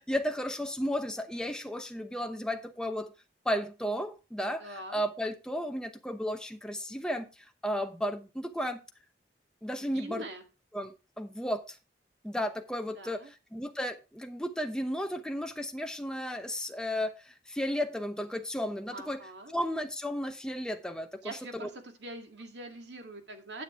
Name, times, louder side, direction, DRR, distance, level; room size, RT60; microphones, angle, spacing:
voice 1, 0.0-3.1 3.4-8.8 9.6-10.2 10.7-11.8 12.2-19.2 19.5-21.7, equal, 5° left, 5 dB, 0.8 m, -34 dB
voice 2, 4.6-5.0 9.8-10.4 12.9-13.3 18.9-19.5 21.2-23.6, right 1 dB, 80° right, 5 dB, 1.8 m, -43 dB
9.6 x 8.0 x 3.5 m, 0.29 s
head